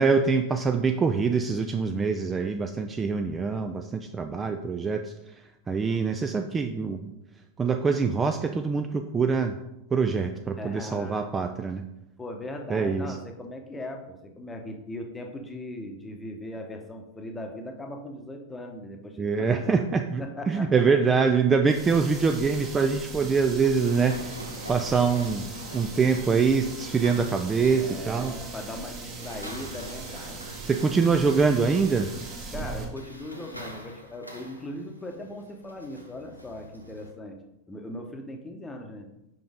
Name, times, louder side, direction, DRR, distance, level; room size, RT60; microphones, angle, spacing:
voice 1, 0.0-5.1 5.7-7.1 7.6-9.6 9.9-11.8 12.7-13.1 19.2-24.4 24.7-25.5 25.7-28.4 30.7-32.1, right 5 dB, 15° right, 6 dB, 0.3 m, -24 dB
voice 2, 10.6-11.3 12.2-19.8 20.2-20.7 27.7-30.4 32.5-37.4 37.7-39.1, left 1 dB, 10° left, 3 dB, 0.9 m, -39 dB
sound 1, 21.7-32.8, right 3 dB, 35° right, 1.3 m, -39 dB
sound 2, 23.8-37.1, equal, 90° right, 0.8 m, -45 dB
5.6 x 5.2 x 3.5 m, 0.90 s
figure-of-eight pair, 90°, 0 cm